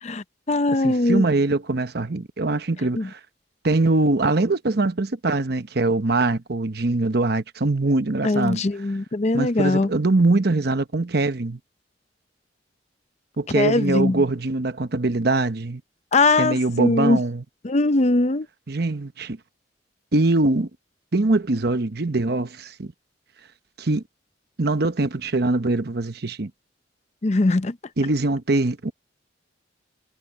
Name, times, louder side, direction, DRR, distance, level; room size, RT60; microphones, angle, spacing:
voice 1, 0.0-1.2 3.0-3.1 8.2-9.9 13.5-14.2 16.1-17.2 17.6-18.5 27.2-27.8, left 2 dB, 35° left, 0.6 m, -21 dB
voice 2, 0.8-3.2 3.6-8.6 9.3-11.6 13.4-15.8 16.4-17.4 18.7-19.4 20.1-20.7 21.1-22.9 23.8-24.0 24.6-26.5 28.0-28.9, right 2 dB, 60° right, 1.0 m, -22 dB
head